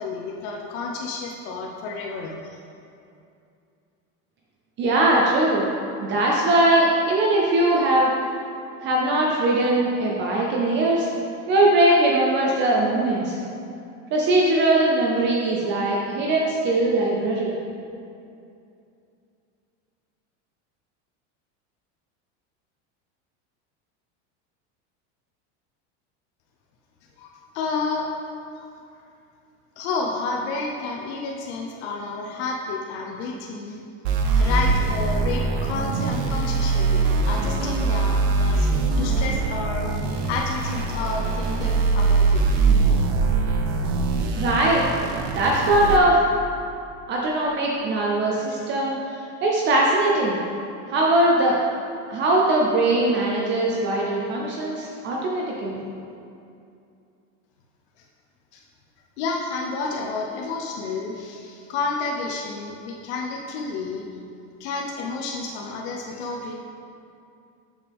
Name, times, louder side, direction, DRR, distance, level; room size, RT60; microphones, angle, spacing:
voice 1, 0.0-2.6 27.2-28.2 28.5-28.7 29.8-33.8 34.3-38.7 39.0-39.9 40.2-42.4 58.5-58.6 59.2-64.0 64.6-66.5, left 3 dB, 65° left, 0 dB, 0.8 m, -30 dB
voice 2, 4.8-5.6 6.0-8.1 8.8-11.1 11.5-13.4 14.1-17.5 44.3-44.8 45.3-46.3 47.1-49.0 49.4-50.4 50.9-51.6 52.1-55.8, right 1 dB, 30° right, -2 dB, 0.7 m, -20 dB
sound 1, 34.0-46.0, right 4 dB, 60° right, 0.8 m, -22 dB
7.2 x 7.0 x 3.5 m, 2.6 s
cardioid pair, 170°, 35 cm